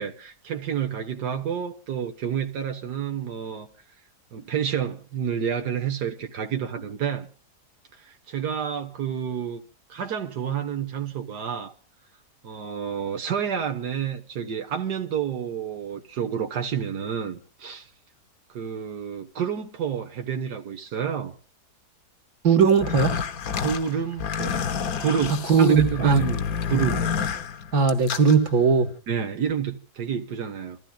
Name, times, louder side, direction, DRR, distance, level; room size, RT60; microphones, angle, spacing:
voice 1, 0.0-3.7 4.3-7.3 7.9-9.6 9.9-11.7 12.4-17.9 18.5-21.3 23.6-24.6 25.0-27.0 29.1-30.8, right 8 dB, 90° right, 1.8 m, -29 dB
voice 2, 22.4-23.1 25.5-26.2 27.7-28.9, right 5 dB, 65° right, 2.1 m, -18 dB
sound 1, 22.7-28.4, left 7 dB, 65° left, 1.3 m, -29 dB
28.5 x 14.5 x 2.4 m
omnidirectional pair, 1.7 m